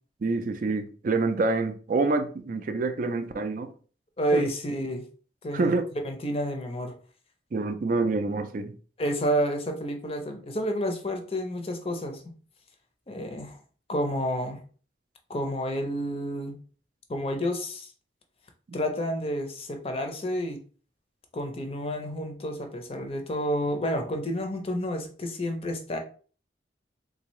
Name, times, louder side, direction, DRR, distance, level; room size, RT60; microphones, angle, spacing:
voice 1, 0.2-3.7 4.3-4.5 5.5-5.8 7.5-8.7, right 3 dB, 45° right, 0.4 m, -27 dB
voice 2, 4.2-5.0 5.4-5.7 6.0-6.9 9.0-12.2 13.1-13.6 13.9-14.6 15.3-16.6 17.1-17.9 18.7-20.6 21.3-26.0, equal, 30° left, 0.5 m, -30 dB
3.6 x 2.6 x 3.0 m
head